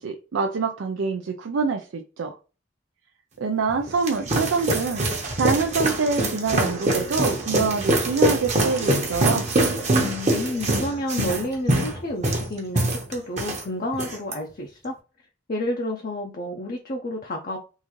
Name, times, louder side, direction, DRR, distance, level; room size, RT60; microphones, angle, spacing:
voice 1, 0.0-2.3 3.4-5.1 5.4-9.4, right 4 dB, 85° right, 0.4 m, -25 dB
sound 1, 3.7-13.6 13.9-14.3, right 1 dB, 35° right, 0.9 m, -24 dB
voice 2, 9.9-15.0 15.5-17.6, left 1 dB, 45° left, 0.5 m, -30 dB
3.7 x 2.6 x 3.0 m
head